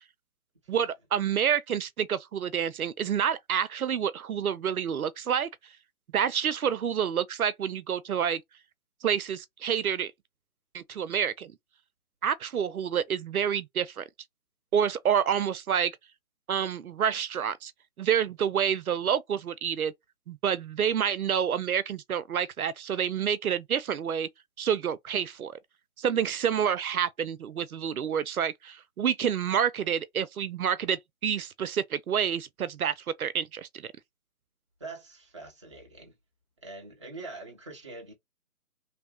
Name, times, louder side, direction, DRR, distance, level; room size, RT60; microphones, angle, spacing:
voice 1, 0.7-5.5 6.1-8.4 9.0-10.1 10.7-11.5 12.2-14.0 14.7-16.0 16.5-17.7 18.0-19.9 20.3-24.3 24.6-25.6 26.0-33.9, right 8 dB, 80° right, 0.6 m, -28 dB
voice 2, 34.8-36.1 36.6-38.1, right 3 dB, 20° right, 0.5 m, -43 dB
3.1 x 2.0 x 2.8 m
figure-of-eight pair, 145°, 43 cm